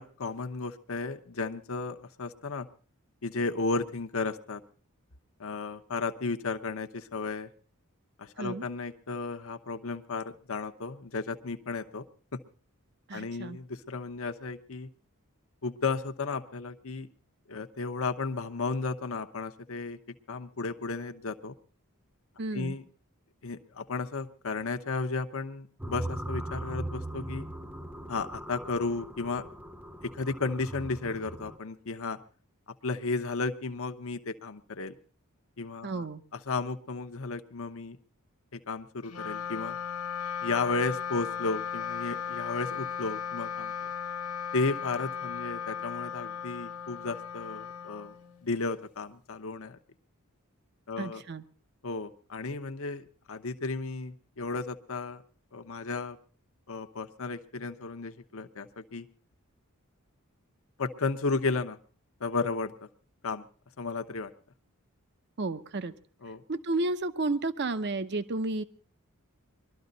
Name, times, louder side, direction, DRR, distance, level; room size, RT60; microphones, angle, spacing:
voice 1, 0.0-2.7 3.2-4.6 5.4-7.5 8.2-12.1 12.3-12.4 13.1-14.9 15.6-17.1 17.5-20.0 20.3-21.5 22.5-22.8 23.4-27.5 28.1-29.4 30.0-32.2 32.8-34.9 35.6-36.1 36.3-38.0 38.5-39.8 40.4-43.7 44.5-48.1 48.4-49.8 50.9-51.2 51.8-55.2 55.5-56.2 56.7-59.1 60.8-61.8 62.2-62.9 63.2-63.4 63.8-64.3 66.2-66.4, left 3 dB, 65° left, 7 dB, 0.9 m, -34 dB
voice 2, 13.1-13.6 22.4-22.7 35.8-36.2 51.0-51.4 65.4-65.9 66.5-68.6, right 2 dB, 50° right, 12 dB, 0.8 m, -32 dB
sound 1, 25.8-31.6, right 1 dB, 10° right, 0.7 m, -39 dB
Wind instrument woodwind instrument, 39.0-48.6, left 7 dB, 85° left, 1.2 m, -36 dB
22.0 x 13.0 x 4.0 m, 0.39 s
head